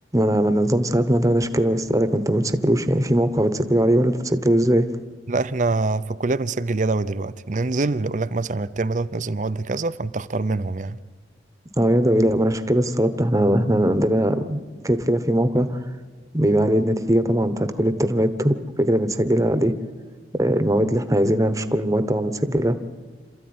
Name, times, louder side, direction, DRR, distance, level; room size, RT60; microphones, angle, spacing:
voice 1, 0.1-4.9 11.8-15.7 16.3-19.7 20.4-22.8, right 1 dB, 20° right, 1.1 m, -20 dB
voice 2, 5.3-11.0, right 3 dB, 45° right, 0.6 m, -25 dB
27.0 x 14.0 x 9.6 m
head